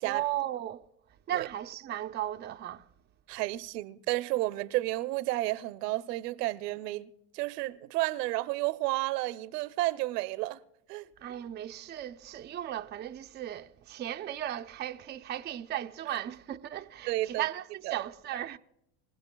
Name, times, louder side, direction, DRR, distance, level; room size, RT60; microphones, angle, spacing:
voice 1, 0.0-0.9 1.3-2.8 11.2-18.6, right 12 dB, 20° right, 0.5 m, -36 dB
voice 2, 3.3-7.1 7.3-10.6 10.9-11.1 17.1-17.4 17.8-18.0, right 18 dB, 75° right, 0.8 m, -31 dB
26.0 x 15.5 x 2.2 m
hypercardioid pair, 95°, 48 cm